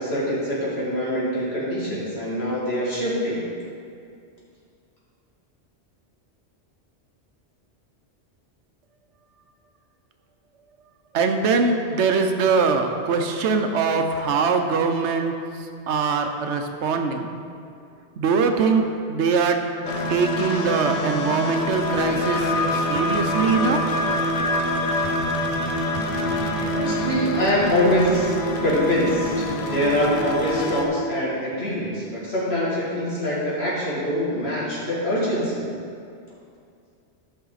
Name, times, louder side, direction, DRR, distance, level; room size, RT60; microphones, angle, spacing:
voice 1, 0.0-3.5 26.7-28.3 28.6-35.7, left 1 dB, 65° left, -8 dB, 2.6 m, -24 dB
voice 2, 11.1-15.3 15.9-17.3 18.2-19.6 20.1-23.8, right 5 dB, 85° right, 5 dB, 1.0 m, -22 dB
sound 1, 19.8-30.8, left 1 dB, 50° left, 0.8 m, -25 dB
12.0 x 5.6 x 4.0 m, 2.4 s
omnidirectional pair, 1.2 m